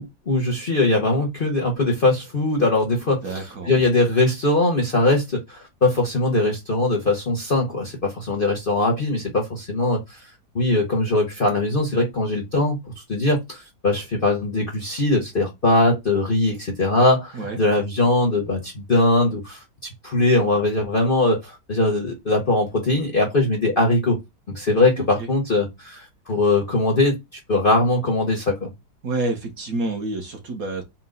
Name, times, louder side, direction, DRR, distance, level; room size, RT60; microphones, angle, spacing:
voice 1, 0.3-3.2 3.7-10.2 10.5-19.6 20.0-24.2 24.5-27.2 27.5-28.7, left 2 dB, 40° left, 0.8 m, -21 dB
voice 2, 3.2-3.8 17.3-17.6 25.0-25.3 29.0-30.8, right 2 dB, 55° right, 1.5 m, -28 dB
4.4 x 2.3 x 3.7 m
omnidirectional pair, 1.9 m